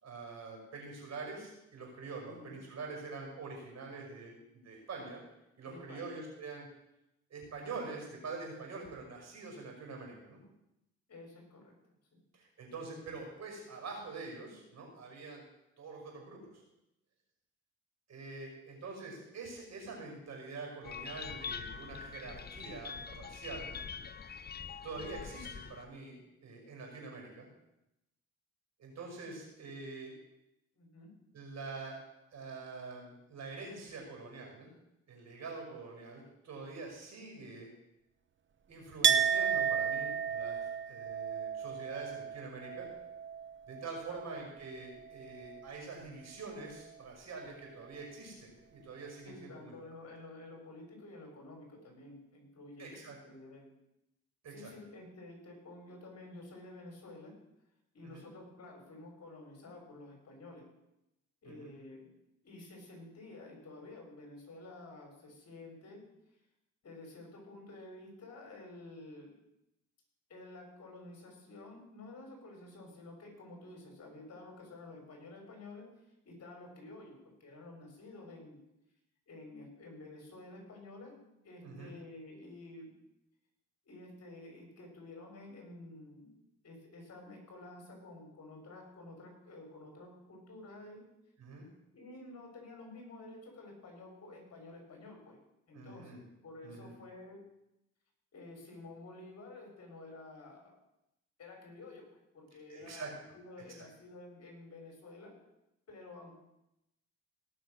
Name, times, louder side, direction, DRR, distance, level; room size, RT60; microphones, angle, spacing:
voice 1, 0.0-5.2 5.6-6.7 7.3-10.4 12.3-15.4 15.8-16.5 18.1-23.8 24.8-27.5 28.8-30.1 31.3-32.0 32.3-34.7 35.1-37.7 38.7-42.9 43.7-49.7 52.8-53.2 54.4-54.7 58.0-58.2 61.4-61.7 81.6-81.9 91.4-91.7 95.7-96.2 96.6-96.9 102.7-103.1 103.8-103.9, right 3 dB, 60° right, 0 dB, 5.7 m, -45 dB
voice 2, 5.6-6.2 11.1-11.7 12.1-12.2 30.7-31.1 44.1-44.3 49.2-53.7 54.5-57.3 57.9-60.7 61.4-62.1 62.4-66.1 66.8-69.3 70.3-75.9 76.2-78.6 79.3-81.2 81.4-82.9 83.8-91.0 91.9-95.4 95.7-97.4 98.3-100.7 101.4-102.1 102.3-105.4 105.9-106.3, left 2 dB, 55° left, 2 dB, 4.7 m, -51 dB
sound 1, 20.8-25.9, left 6 dB, 35° left, 0.6 m, -44 dB
Chink clink, 39.0-44.6 44.8-45.7, right 7 dB, 40° right, 0.9 m, -33 dB
18.0 x 6.3 x 6.3 m, 0.87 s
cardioid pair, 90°, 30 cm